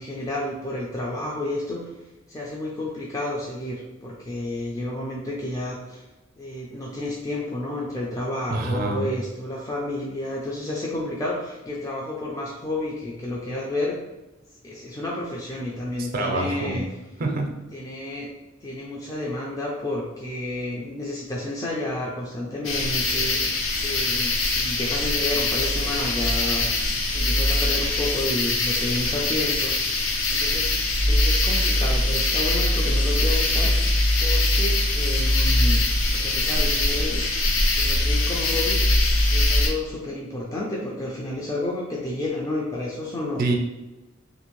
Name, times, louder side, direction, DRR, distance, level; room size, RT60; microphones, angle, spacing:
voice 1, 0.0-1.9 2.3-6.1 6.4-14.0 14.6-16.8 17.7-18.3 18.6-29.8 30.3-30.7 31.1-33.7 34.2-35.8 36.1-37.2 37.8-43.5, left 1 dB, 15° left, -4 dB, 0.4 m, -31 dB
voice 2, 8.5-9.0 16.1-16.8 17.2-17.5 43.4-43.6, right 2 dB, 45° right, 2 dB, 0.5 m, -25 dB
sound 1, 22.6-39.7, left 2 dB, 70° left, 0.5 m, -22 dB
2.7 x 2.6 x 3.0 m, 1.0 s
head